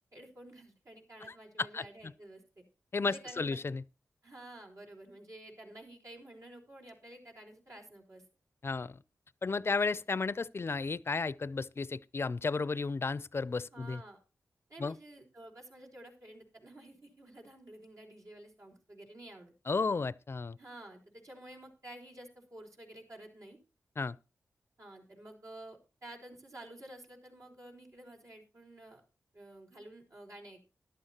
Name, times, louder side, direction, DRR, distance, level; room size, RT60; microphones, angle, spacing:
voice 1, 0.1-2.6 3.0-3.6 4.2-8.2 13.7-14.2 14.7-19.5 20.6-23.6 24.8-29.0 29.3-30.7, right 1 dB, 70° right, 4.4 m, -51 dB
voice 2, 2.9-3.8 8.6-9.0 9.4-14.0 14.8-14.9 19.7-20.6 24.0-24.2, left 4 dB, 45° left, 0.5 m, -33 dB
14.0 x 11.5 x 2.9 m
cardioid pair, 50°, 6 cm